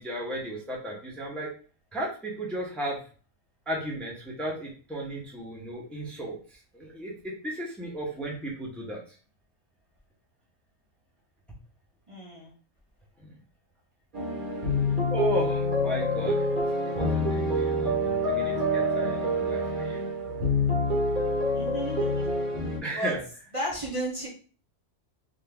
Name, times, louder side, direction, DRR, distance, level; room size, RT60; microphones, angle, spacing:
voice 1, 0.0-1.5 1.9-3.0 3.7-6.4 6.7-9.0 13.2-13.3 15.1-16.5 16.8-20.0 22.8-23.2, right 1 dB, ahead, -3 dB, 0.9 m, -35 dB
voice 2, 12.1-12.5 21.5-22.3 22.9-23.2 23.5-24.3, right 1 dB, 30° right, -5 dB, 0.9 m, -33 dB
sound 1, 14.1-22.8, left 1 dB, 45° right, 1.3 m, -26 dB
3.9 x 2.7 x 3.4 m, 0.39 s
omnidirectional pair, 1.2 m